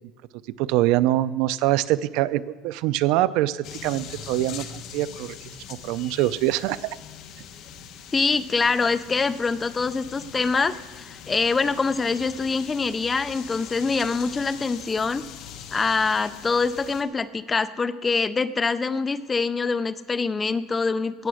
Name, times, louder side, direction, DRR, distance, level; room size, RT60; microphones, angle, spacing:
voice 1, 0.6-5.4 5.7-7.0, right 15 dB, 70° right, 16 dB, 0.4 m, -24 dB
sound 1, 3.6-17.0, left 8 dB, 55° left, 1.1 m, -42 dB
voice 2, 8.1-15.2 15.7-21.3, left 4 dB, 15° left, 13 dB, 0.5 m, -24 dB
17.5 x 6.8 x 6.3 m, 1.5 s
cardioid pair, 150°, 0 cm